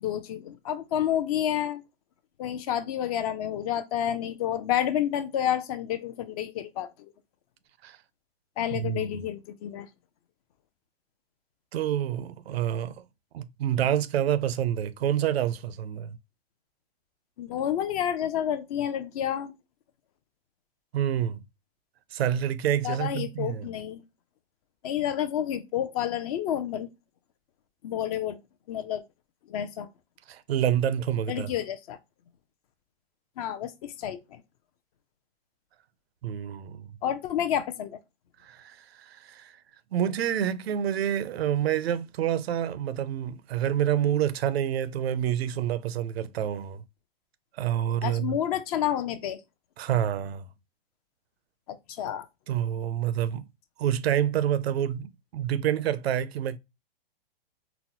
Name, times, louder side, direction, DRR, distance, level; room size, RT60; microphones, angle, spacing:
voice 1, 0.0-1.8 2.4-7.1 8.6-9.9 17.4-19.5 22.8-24.0 24.8-26.9 27.8-28.4 28.7-29.0 29.5-29.9 31.3-32.0 33.4-34.4 37.0-38.0 48.0-49.4 51.7-52.3, left 10 dB, 40° left, 0.4 m, -29 dB
voice 2, 8.7-9.0 11.7-13.0 13.3-16.1 20.9-21.4 22.1-23.7 30.3-31.5 36.2-36.9 38.4-39.5 39.9-46.8 47.6-48.4 49.8-50.5 52.5-53.4 53.8-56.6, right 10 dB, 80° right, 0.5 m, -28 dB
4.0 x 2.0 x 2.7 m
hypercardioid pair, 135°, 31 cm